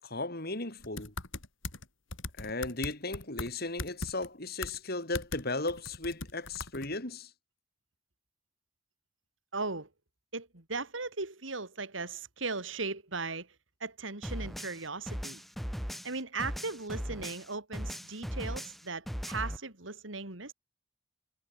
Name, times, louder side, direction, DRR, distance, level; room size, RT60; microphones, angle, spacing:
voice 1, 0.0-1.1 2.4-7.3, left 2 dB, 55° left, 5.6 m, -36 dB
sound 1, 0.8-1.8 2.1-3.5 3.8-4.3 4.6-4.8 5.1-5.4 5.7-6.9, left 3 dB, 85° left, 3.9 m, -39 dB
voice 2, 9.5-9.9 10.3-13.5 13.8-15.4 16.0-20.5, right 3 dB, 80° right, 3.2 m, -37 dB
sound 2, 14.2-17.5 17.7-19.6, equal, ahead, 7.0 m, -38 dB
head